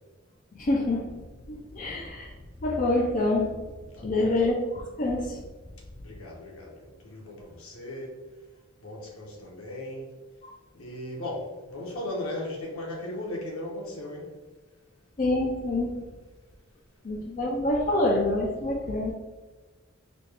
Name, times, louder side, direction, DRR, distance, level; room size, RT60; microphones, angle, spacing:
voice 1, 0.5-1.1 1.5-2.3 2.6-3.7 4.0-5.4 15.2-16.0 17.0-19.1, left 2 dB, 40° left, -1 dB, 0.4 m, -26 dB
voice 2, 3.9-4.3 6.0-8.2 8.8-10.1 10.7-14.3, left 1 dB, 85° left, -2 dB, 1.0 m, -37 dB
4.1 x 2.3 x 3.3 m, 1.3 s
head